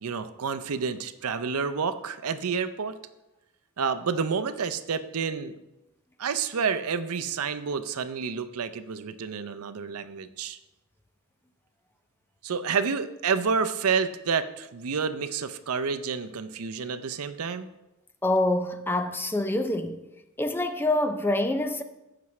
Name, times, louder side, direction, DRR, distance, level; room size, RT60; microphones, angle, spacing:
voice 1, 0.0-3.0 3.8-5.5 6.2-10.6 12.4-17.7, right 6 dB, 75° right, 0.6 m, -29 dB
voice 2, 18.2-20.1 20.4-21.8, left 1 dB, 10° left, 0.4 m, -26 dB
15.5 x 5.9 x 3.2 m
head